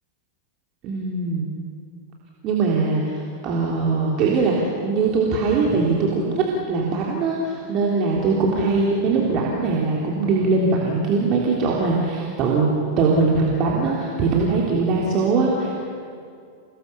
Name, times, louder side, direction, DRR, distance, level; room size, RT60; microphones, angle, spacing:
voice 1, 0.8-1.5 2.4-15.8, right 4 dB, 35° right, -2 dB, 3.5 m, -21 dB
29.0 x 19.5 x 7.1 m, 2.3 s
figure-of-eight pair, 90°, 0 cm